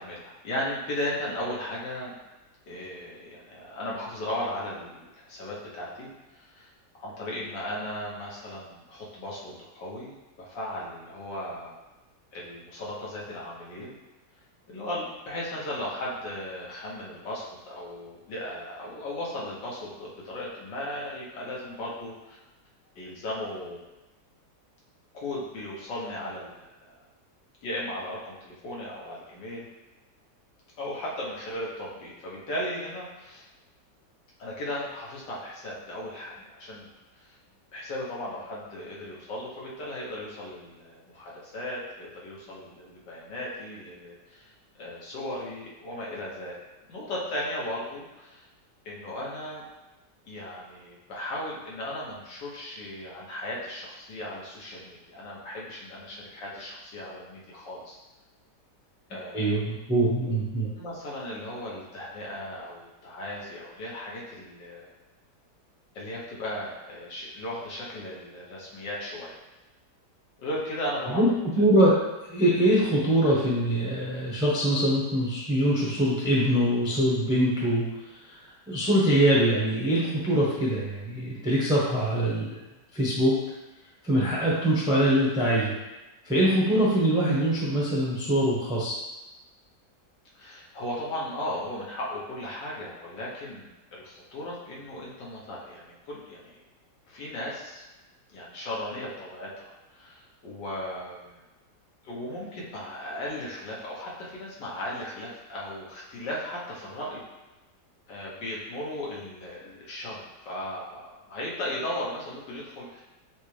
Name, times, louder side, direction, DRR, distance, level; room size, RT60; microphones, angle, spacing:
voice 1, 0.0-2.1 2.7-6.7 7.0-11.7 12.3-14.0 14.7-22.4 23.0-23.8 25.1-27.0 27.6-29.7 30.8-33.5 34.4-36.9 37.2-37.4 37.7-46.6 46.9-48.5 48.9-49.7 50.3-58.0 59.1-59.6 60.2-60.4 60.8-64.9 66.0-69.4 70.4-71.4 90.4-96.6 97.1-97.8 98.3-101.4 102.0-107.2 108.1-113.0, left 1 dB, 90° left, -5 dB, 1.7 m, -36 dB
voice 2, 59.3-60.7 71.1-72.0 72.3-77.9 78.1-78.4 78.7-82.6 82.9-83.4 84.0-85.7 86.2-89.0, right 1 dB, 5° right, -6 dB, 0.5 m, -23 dB
6.4 x 2.2 x 3.2 m, 1.1 s
omnidirectional pair, 1.9 m